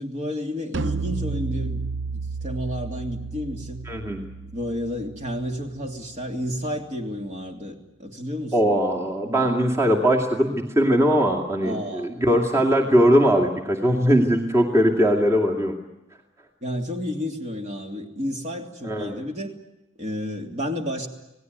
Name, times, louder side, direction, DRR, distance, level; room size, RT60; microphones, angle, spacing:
voice 1, 0.0-1.8 2.1-3.8 4.5-8.8 9.2-9.5 11.6-12.4 16.6-19.6 20.0-21.1, equal, 35° right, 3 dB, 3.0 m, -31 dB
sound 1, 0.7-6.2, right 4 dB, 65° right, 0.8 m, -32 dB
voice 2, 3.9-4.2 8.5-15.8 18.8-19.1, equal, 15° right, -1 dB, 2.4 m, -20 dB
28.5 x 18.5 x 9.5 m, 0.98 s
head